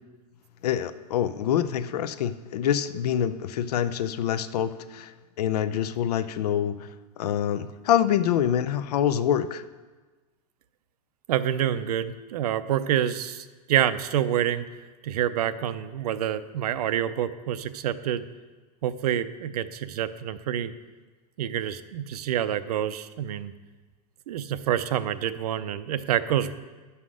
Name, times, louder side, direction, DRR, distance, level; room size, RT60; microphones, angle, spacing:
voice 1, 0.6-5.1 5.4-6.8 7.2-9.6, left 10 dB, 85° left, 13 dB, 0.6 m, -26 dB
voice 2, 11.3-18.2 18.8-20.7 21.4-23.5 24.3-26.5, right 10 dB, 80° right, 13 dB, 0.6 m, -27 dB
9.7 x 5.7 x 6.3 m, 1.3 s
supercardioid pair, 180°, 20 cm